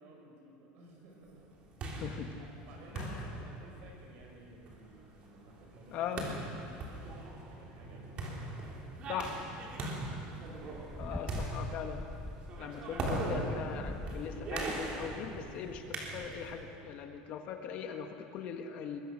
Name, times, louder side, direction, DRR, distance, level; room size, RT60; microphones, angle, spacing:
voice 1, 0.0-1.5 2.6-10.3, right 1 dB, 50° right, 0 dB, 6.7 m, -56 dB
sound 1, 1.4-16.6, right 2 dB, 30° right, 3.5 m, -40 dB
voice 2, 1.9-2.3 2.9-3.3 5.9-6.3 9.1-9.3 11.0-12.0 12.6-19.0, left 8 dB, 40° left, 5 dB, 1.5 m, -40 dB
sound 2, 10.4-15.8, left 1 dB, 5° left, 0.7 m, -44 dB
25.5 x 21.5 x 6.6 m, 2.7 s
cardioid pair, 175°, 4 cm